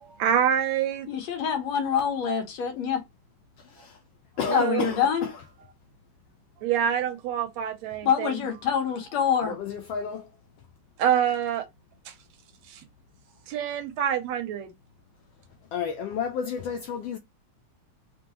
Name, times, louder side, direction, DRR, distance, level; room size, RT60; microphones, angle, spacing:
voice 1, 0.0-1.1 4.5-4.9 6.6-8.4 11.0-11.7 12.1-12.2 12.7-12.8 13.5-14.7, right 9 dB, 75° right, 1.9 m, -26 dB
voice 2, 1.1-3.0 4.5-5.3 8.0-9.5, left 7 dB, 70° left, 2.4 m, -25 dB
voice 3, 4.4-5.3 9.5-10.3 15.7-17.2, left 7 dB, 85° left, 1.3 m, -31 dB
5.4 x 2.9 x 2.8 m
omnidirectional pair, 3.3 m